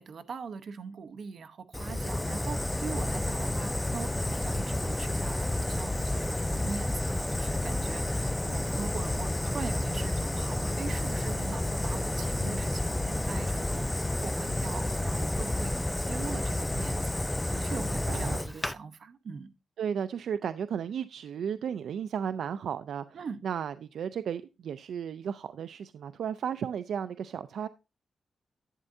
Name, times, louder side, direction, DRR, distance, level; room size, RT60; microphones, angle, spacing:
voice 1, 0.0-19.5 23.1-23.4, right 5 dB, 65° right, 0.9 m, -41 dB
Fire, 1.7-18.7, left 1 dB, 10° left, 0.4 m, -30 dB
voice 2, 17.7-18.4 19.8-23.2 23.4-27.7, right 8 dB, 85° right, 0.4 m, -34 dB
11.0 x 9.0 x 2.6 m
wide cardioid pair, 120°, 0 cm